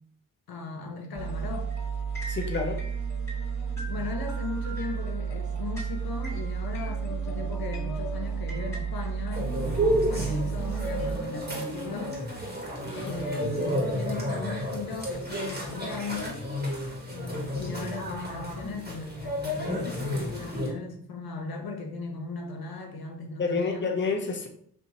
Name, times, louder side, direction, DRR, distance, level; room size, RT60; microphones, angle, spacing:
voice 1, 0.5-1.7 3.9-12.2 12.9-16.5 17.1-23.9, left 3 dB, 85° left, 3 dB, 0.8 m, -37 dB
sound 1, 1.2-11.1, right 6 dB, 10° left, 1.6 m, -32 dB
voice 2, 2.3-2.8 12.8-13.2 23.4-24.5, left 4 dB, 30° left, 3 dB, 0.7 m, -29 dB
sound 2, 9.3-20.7, equal, 30° right, 1.5 m, -31 dB
4.4 x 2.6 x 2.9 m, 0.63 s
cardioid pair, 65°, 35 cm